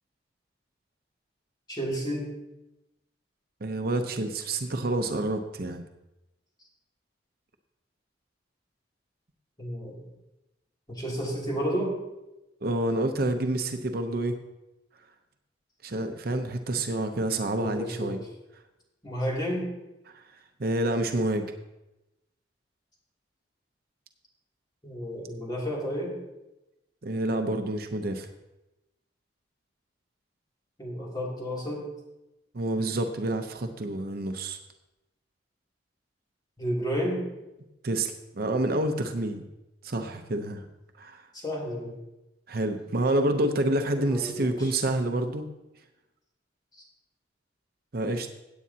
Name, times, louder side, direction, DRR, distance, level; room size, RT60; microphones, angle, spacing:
voice 1, 1.7-2.3 9.6-10.0 10.9-12.0 17.6-18.2 19.0-19.7 24.8-26.1 30.8-31.8 36.6-37.2 41.3-42.0 43.9-44.7, equal, 25° left, -4 dB, 2.8 m, -31 dB
voice 2, 3.6-5.8 12.6-14.4 15.8-18.2 20.1-20.2 20.6-21.4 27.0-28.3 32.5-34.6 37.8-39.4 39.8-40.6 41.0-41.2 42.5-45.5 47.9-48.3, right 1 dB, 55° right, 6 dB, 0.7 m, -28 dB
16.5 x 8.4 x 2.8 m, 0.96 s
head